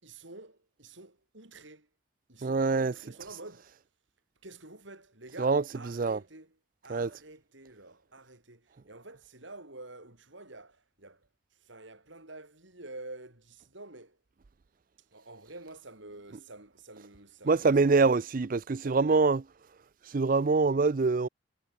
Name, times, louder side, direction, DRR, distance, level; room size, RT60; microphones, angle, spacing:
voice 1, 0.0-1.9 2.3-3.8 4.4-6.6 6.8-14.2 15.1-18.2 18.8-19.3, right 2 dB, 65° right, 5.2 m, -49 dB
voice 2, 2.4-2.9 5.4-6.2 6.9-7.1 17.5-19.4 20.1-21.3, right 4 dB, 40° right, 0.4 m, -25 dB
head